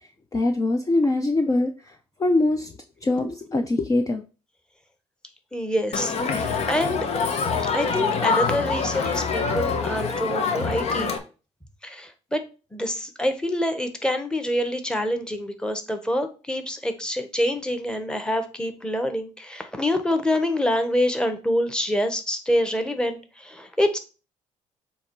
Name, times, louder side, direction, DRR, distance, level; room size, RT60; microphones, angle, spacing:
voice 1, 0.3-2.7 3.0-4.2, left 2 dB, 25° left, 5 dB, 0.7 m, -23 dB
voice 2, 5.5-7.1 7.7-11.2 11.8-12.4 12.7-24.0, left 1 dB, 5° left, 7 dB, 1.2 m, -26 dB
Crowd, 5.9-11.2, left 5 dB, 55° left, 1.1 m, -25 dB
7.0 x 3.0 x 4.7 m, 0.34 s
cardioid pair, 85°, 13 cm